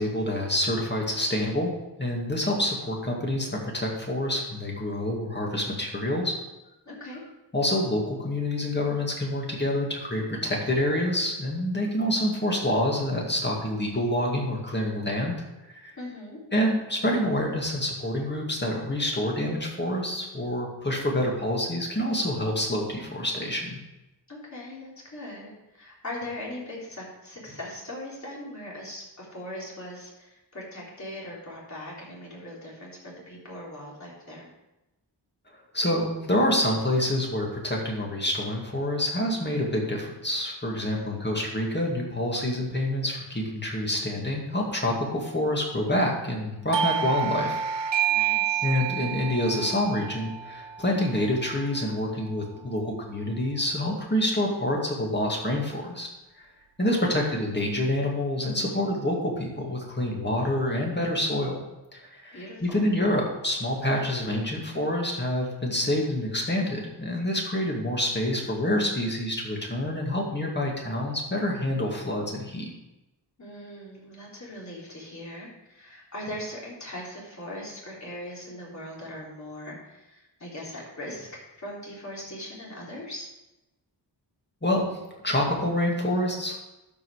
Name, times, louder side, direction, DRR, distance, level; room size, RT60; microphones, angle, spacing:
voice 1, 0.0-1.7 2.0-6.4 7.5-15.3 15.7-15.9 16.5-23.8 35.7-47.6 48.0-48.1 48.6-56.1 56.4-56.5 56.8-61.6 61.9-72.7 84.6-84.9 85.2-86.6, left 1 dB, 25° left, -1 dB, 2.2 m, -27 dB
voice 2, 6.9-7.2 16.0-16.4 24.3-34.5 40.8-41.2 48.1-48.7 57.1-57.3 62.3-62.9 73.4-83.3, left 1 dB, 40° left, -5 dB, 3.5 m, -40 dB
Doorbell, 46.7-52.0, right 9 dB, 80° right, 0.6 m, -29 dB
12.0 x 5.3 x 4.9 m, 0.98 s
wide cardioid pair, 110°, 43 cm